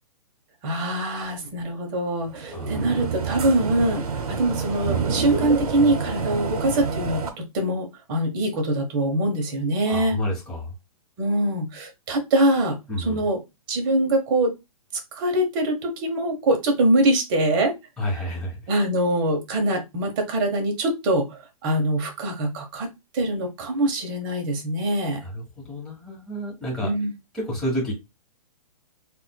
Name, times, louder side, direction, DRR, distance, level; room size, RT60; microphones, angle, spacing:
voice 1, 0.6-10.2 11.2-13.4 13.7-14.5 15.1-17.7 18.7-22.9 23.1-25.2 26.8-27.1, right 1 dB, 35° right, 3 dB, 1.1 m, -23 dB
sound 1, 2.3-7.3, right 5 dB, 75° right, 1.0 m, -28 dB
voice 2, 2.5-2.9 9.8-10.7 12.9-13.2 18.0-18.6 25.2-26.9 27.3-27.9, equal, 5° left, -6 dB, 1.3 m, -30 dB
4.2 x 2.6 x 2.3 m, 0.23 s
hypercardioid pair, 150°, 19 cm